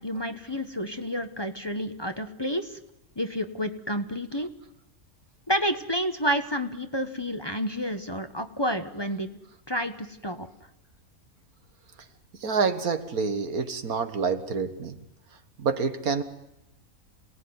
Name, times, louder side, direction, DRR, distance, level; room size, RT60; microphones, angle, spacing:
voice 1, 0.0-2.8 3.2-4.5 5.5-9.4 9.7-10.5, equal, 20° left, 8 dB, 1.0 m, -30 dB
voice 2, 12.4-15.0 15.6-16.2, right 5 dB, 90° right, 9 dB, 2.0 m, -27 dB
27.5 x 18.0 x 9.6 m, 0.91 s
omnidirectional pair, 1.5 m